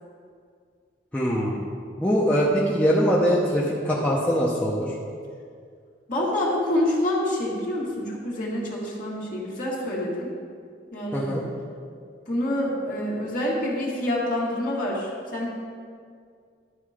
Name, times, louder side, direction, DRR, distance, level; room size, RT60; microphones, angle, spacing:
voice 1, 1.1-1.6 2.0-4.9 11.1-11.4, equal, 10° left, -6 dB, 0.7 m, -22 dB
voice 2, 6.1-10.3 10.9-11.4 12.3-15.5, left 1 dB, 45° left, -5 dB, 1.9 m, -27 dB
12.0 x 4.3 x 4.9 m, 2.2 s
head